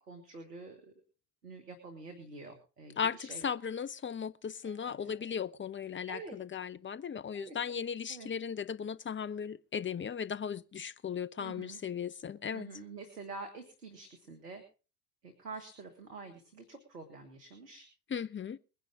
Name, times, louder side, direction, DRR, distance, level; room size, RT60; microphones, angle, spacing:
voice 1, 0.1-0.9 1.4-3.5 4.6-5.2 6.1-6.4 7.3-8.3 11.4-11.8 12.5-14.6 15.2-17.9, right 3 dB, 90° right, 2.1 m, -47 dB
voice 2, 3.0-12.7 18.1-18.6, left 7 dB, 25° left, 0.9 m, -37 dB
21.0 x 11.0 x 3.8 m
figure-of-eight pair, 55°, 47 cm